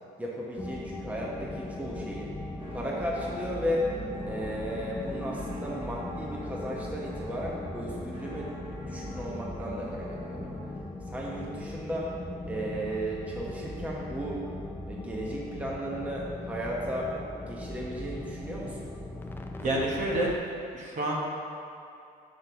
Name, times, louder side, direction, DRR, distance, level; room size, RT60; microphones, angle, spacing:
voice 1, 0.2-2.3 2.7-3.9 4.2-8.6 8.8-10.5 11.1-12.1 12.4-14.4 14.9-17.1 17.5-18.9, equal, 10° right, -4 dB, 0.9 m, -35 dB
sound 1, 0.6-20.4, left 2 dB, 15° left, 0.4 m, -39 dB
sound 2, 2.6-10.7, equal, 30° right, 1.5 m, -46 dB
voice 2, 19.6-20.3 20.7-21.1, right 1 dB, 50° right, -2 dB, 1.2 m, -28 dB
5.3 x 4.4 x 5.7 m, 2.5 s
cardioid pair, 110°, 17 cm